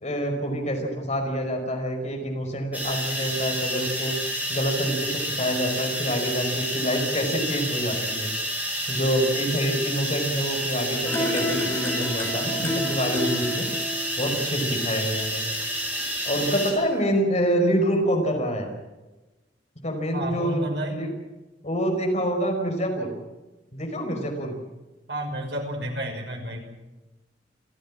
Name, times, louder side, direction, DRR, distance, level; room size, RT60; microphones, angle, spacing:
voice 1, 0.0-4.1 4.5-8.3 8.9-13.7 14.2-15.5 16.3-18.7 19.8-21.1 21.6-23.1 23.7-24.5, equal, 40° left, 3 dB, 5.2 m, -26 dB
sound 1, 2.7-16.7, equal, 10° right, 6.8 m, -29 dB
sound 2, 11.0-16.1 16.4-16.5, left 1 dB, 15° left, 7.5 m, -32 dB
voice 2, 20.1-21.0 25.1-26.7, right 1 dB, 65° right, 2 dB, 5.8 m, -31 dB
28.0 x 16.0 x 7.6 m, 1.1 s
head